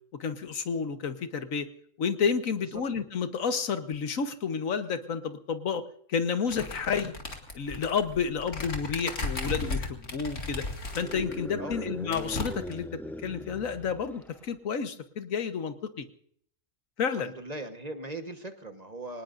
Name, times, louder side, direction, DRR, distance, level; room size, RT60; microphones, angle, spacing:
voice 1, 0.2-1.7 2.0-5.8 6.1-7.1 7.5-10.6 10.9-16.1 17.0-17.3, left 6 dB, 85° left, 9 dB, 1.6 m, -30 dB
sound 1, 6.5-11.4 11.7-11.8 12.1-12.8, left 2 dB, 65° left, 2.5 m, -35 dB
sound 2, 10.9-14.5, left 1 dB, ahead, 0.4 m, -40 dB
voice 2, 17.1-19.2, right 2 dB, 30° right, 7 dB, 1.3 m, -39 dB
25.0 x 19.0 x 2.6 m, 0.63 s
omnidirectional pair, 1.4 m